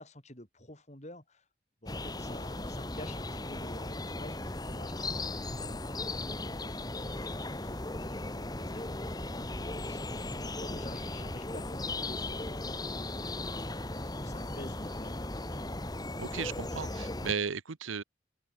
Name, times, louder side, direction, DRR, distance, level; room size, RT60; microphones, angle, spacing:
voice 1, 0.0-1.4 1.8-13.6 13.9-15.4, left 1 dB, 35° left, 7.5 m, -50 dB
sound 1, 1.9-17.3, left 2 dB, 20° left, 1.7 m, -37 dB
voice 2, 16.2-18.0, right 6 dB, 90° right, 0.9 m, -35 dB
open air
head